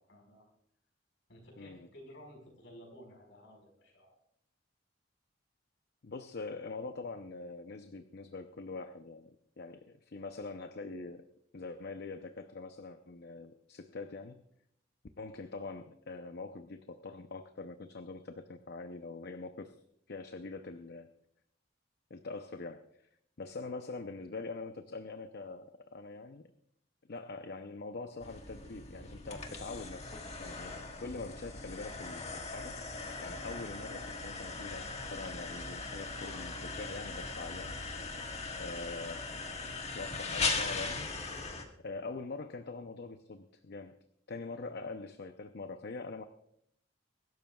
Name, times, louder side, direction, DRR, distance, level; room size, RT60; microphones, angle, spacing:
voice 1, 0.1-0.5 1.3-4.2, equal, 75° left, 2 dB, 4.7 m, -54 dB
voice 2, 1.6-1.9 6.0-11.3 11.5-14.4 15.2-19.8 20.1-21.1 22.1-22.8 23.4-26.5 27.1-32.8 33.2-37.8 38.6-39.2 39.8-41.1 41.8-44.0 44.3-46.2, left 3 dB, 60° left, 8 dB, 0.6 m, -44 dB
sound 1, 28.2-41.6, left 4 dB, 35° left, 1.5 m, -39 dB
23.5 x 12.5 x 2.3 m, 0.72 s
head